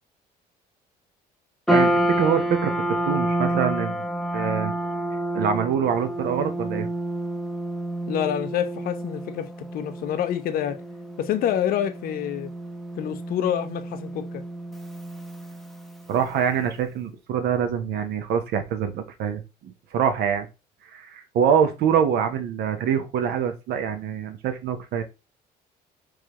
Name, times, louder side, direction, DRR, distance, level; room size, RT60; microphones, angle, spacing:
sound 1, 1.7-16.1, right 1 dB, ahead, 0.6 m, -29 dB
voice 1, 1.7-4.1 4.3-4.7 5.3-6.9 16.1-20.5 20.9-25.0, right 8 dB, 75° right, 0.7 m, -25 dB
voice 2, 8.1-10.8 11.2-12.5 13.0-14.4, left 10 dB, 60° left, 0.6 m, -27 dB
4.8 x 2.3 x 2.9 m
cardioid pair, 110°, 17 cm